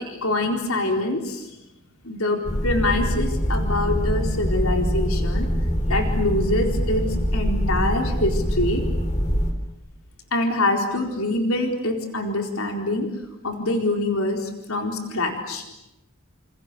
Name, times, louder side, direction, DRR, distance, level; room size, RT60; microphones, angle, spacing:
voice 1, 0.0-1.5 2.0-5.5 5.9-7.0 7.3-8.8 10.3-13.1 13.4-15.6, left 2 dB, 80° left, 3 dB, 4.2 m, -25 dB
sound 1, 2.4-9.5, equal, 30° left, 3.7 m, -24 dB
29.0 x 28.5 x 6.9 m, 0.92 s
head